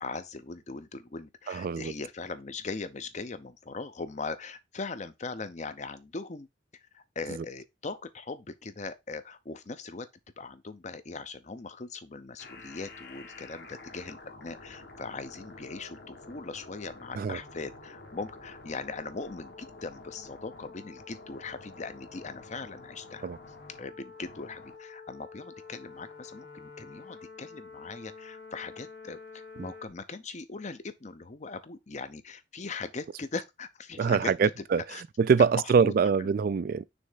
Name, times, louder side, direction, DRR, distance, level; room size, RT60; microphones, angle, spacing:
voice 1, 0.0-6.5 6.9-10.1 10.4-23.3 23.8-35.0 35.5-35.9 36.2-36.3, left 4 dB, 40° left, 0.6 m, -40 dB
voice 2, 1.5-1.9 17.2-17.4 23.2-23.4 34.0-34.8 35.2-36.8, right 6 dB, 50° right, 0.3 m, -24 dB
sound 1, 12.4-29.9, left 3 dB, 60° left, 1.7 m, -48 dB
6.3 x 3.3 x 5.5 m
head